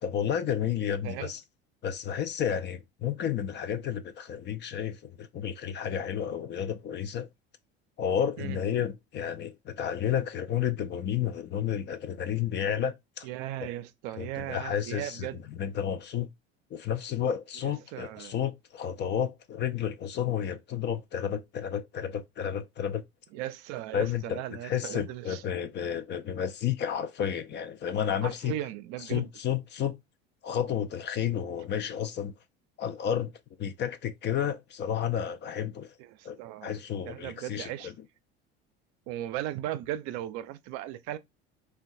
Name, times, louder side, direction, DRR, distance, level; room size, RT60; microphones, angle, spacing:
voice 1, 0.0-1.4 1.8-7.3 8.0-13.3 13.6-13.7 14.2-16.3 16.7-23.0 23.9-28.5 29.0-30.0 30.4-32.3 32.8-33.3 33.6-35.9 36.2-37.9, left 9 dB, 35° left, 0.4 m, -31 dB
voice 2, 13.2-15.4 17.6-18.3 23.3-25.4 28.2-29.3 36.0-36.8 37.0-37.9 39.1-41.2, right 13 dB, 60° right, 0.5 m, -37 dB
3.6 x 2.2 x 2.6 m
hypercardioid pair, 75°, 32 cm